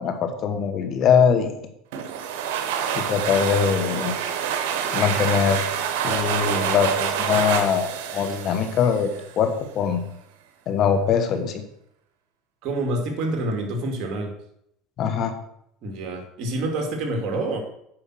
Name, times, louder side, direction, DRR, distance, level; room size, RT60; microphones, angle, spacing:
voice 1, 0.0-1.6 2.9-4.1 4.9-5.7 6.0-9.1 9.4-10.0 10.7-11.6 15.0-15.3, left 7 dB, 45° left, 8 dB, 1.3 m, -22 dB
sound 1, 1.9-9.4, right 8 dB, 80° right, 1.2 m, -27 dB
voice 2, 12.6-14.3 15.8-17.6, right 2 dB, 55° right, 3 dB, 2.5 m, -27 dB
8.9 x 5.6 x 6.3 m, 0.74 s
supercardioid pair, 115°, 0 cm